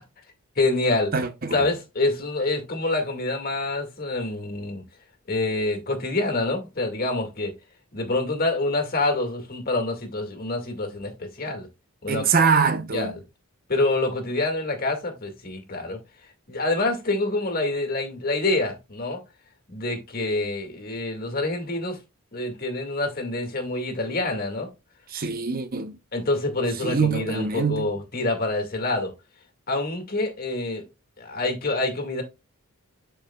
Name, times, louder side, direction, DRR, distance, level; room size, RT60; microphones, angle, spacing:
voice 1, 0.6-1.1 1.5-4.8 5.3-7.5 7.9-11.7 12.0-12.2 12.9-13.1 13.7-16.0 16.5-19.2 19.7-22.0 22.3-24.7 25.1-25.3 26.1-29.1 29.7-30.8 31.2-32.2, left 2 dB, 40° left, 2.0 m, -26 dB
voice 2, 1.1-1.6 12.1-13.1 25.1-26.0 26.8-27.9, right 5 dB, 40° right, 0.7 m, -24 dB
12.0 x 4.7 x 2.3 m
head